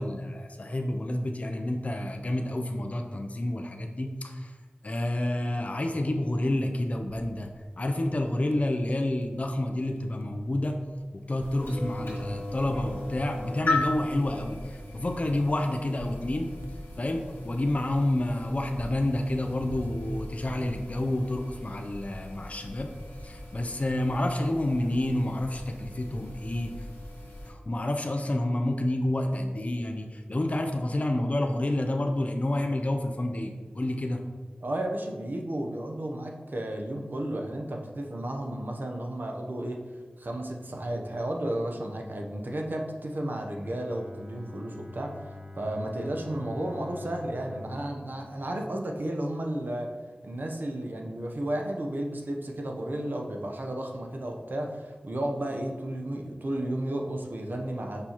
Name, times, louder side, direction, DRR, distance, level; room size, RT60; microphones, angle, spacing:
voice 1, 0.0-4.6 4.8-7.5 7.8-10.8 11.1-16.5 17.0-22.9 23.2-26.7 27.5-34.2, left 1 dB, 40° left, 3 dB, 0.5 m, -29 dB
Crackle, 7.3-20.7, right 1 dB, 85° right, 0.4 m, -46 dB
sound 1, 11.4-27.5, left 2 dB, 90° left, 1.7 m, -38 dB
voice 2, 34.6-39.8 40.2-49.9 50.2-58.0, right 1 dB, 65° right, 2 dB, 0.8 m, -33 dB
Bowed string instrument, 43.5-49.5, left 2 dB, 45° right, 1.5 m, -46 dB
6.7 x 5.4 x 3.0 m, 1.4 s
wide cardioid pair, 65°, 4 cm